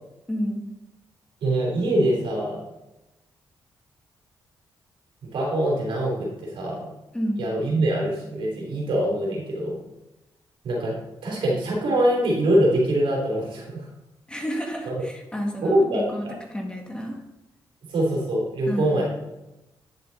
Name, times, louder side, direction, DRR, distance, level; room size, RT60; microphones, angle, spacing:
voice 1, 0.3-0.6 7.1-7.4 14.3-17.2 18.7-19.0, equal, 10° left, 0 dB, 2.1 m, -30 dB
voice 2, 1.4-2.6 5.2-6.9 7.4-9.8 10.6-10.9 11.2-13.9 14.8-14.9 15.6-16.4 17.9-19.0, right 1 dB, 80° right, -3 dB, 3.4 m, -24 dB
10.5 x 6.0 x 4.1 m, 0.97 s
cardioid pair, 65°, 9 cm